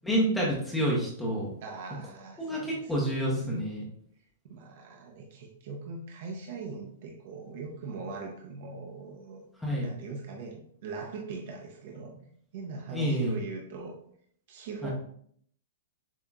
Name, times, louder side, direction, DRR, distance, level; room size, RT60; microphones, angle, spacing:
voice 1, 0.0-1.5 2.4-3.8 9.6-9.9 12.9-13.3 14.8-14.9, equal, 5° left, -4 dB, 0.7 m, -28 dB
voice 2, 1.6-3.7 4.4-9.4 9.8-12.1 12.5-14.0 14.5-14.9, right 4 dB, 40° right, 0 dB, 0.7 m, -41 dB
7.1 x 2.9 x 2.3 m, 0.63 s
hypercardioid pair, 180°, 0 cm